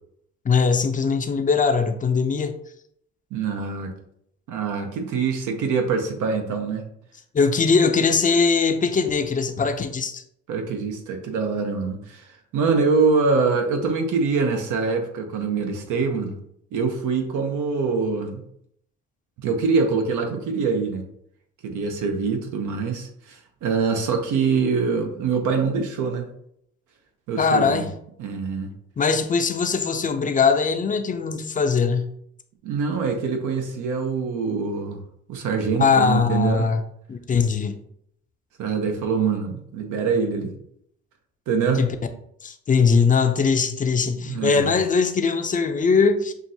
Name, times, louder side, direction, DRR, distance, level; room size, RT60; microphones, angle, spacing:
voice 1, 0.4-2.5 7.3-10.2 27.4-27.9 29.0-32.1 35.8-36.8 37.1-37.8 41.8-42.0 42.4-46.3, left 5 dB, 25° left, 0.5 m, -21 dB
voice 2, 3.3-3.9 4.5-6.8 10.5-16.4 16.7-18.4 19.4-21.1 21.6-26.3 27.3-27.9 28.2-28.7 32.6-35.0 35.3-36.7 38.6-40.5 41.5-41.9 44.3-44.8, right 5 dB, 85° right, 0.8 m, -24 dB
6.0 x 2.5 x 2.7 m
cardioid pair, 90°, 30 cm